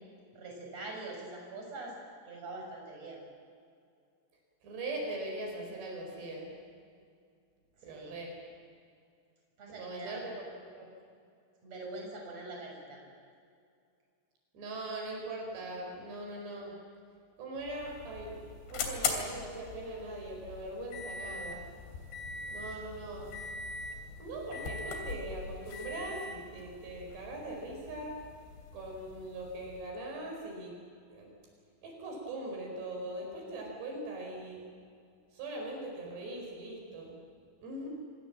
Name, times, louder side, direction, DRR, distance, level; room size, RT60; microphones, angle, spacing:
voice 1, 0.3-1.9 2.3-3.2 7.8-8.2 9.6-10.2 11.6-13.0 22.6-22.8, right 2 dB, 35° right, 0 dB, 7.5 m, -44 dB
voice 2, 4.6-6.5 7.8-8.3 9.8-10.9 14.5-16.7 17.4-21.6 22.5-23.3 24.2-28.2 28.7-30.8 31.1-31.3 31.8-34.6 35.3-37.2 37.6-37.9, right 2 dB, 75° right, 0 dB, 6.9 m, -41 dB
sound 1, 17.5-30.0, left 4 dB, 85° left, 5.2 m, -41 dB
26.5 x 24.0 x 7.4 m, 2.3 s
omnidirectional pair, 4.9 m